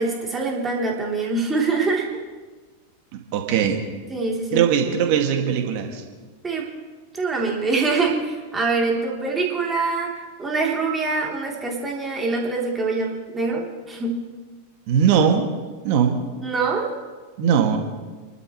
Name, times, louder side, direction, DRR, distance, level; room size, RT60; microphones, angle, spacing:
voice 1, 0.0-2.1 4.1-4.6 5.1-5.2 6.4-6.7 7.1-10.1 10.4-14.2 16.4-16.9 17.5-17.7, right 3 dB, 15° right, -2 dB, 3.4 m, -24 dB
voice 2, 3.1-3.8 4.5-6.0 14.9-15.5 15.8-16.2 17.4-17.8, right 8 dB, 45° right, 3 dB, 2.2 m, -20 dB
28.5 x 12.0 x 3.2 m, 1.4 s
figure-of-eight pair, 90°, 0 cm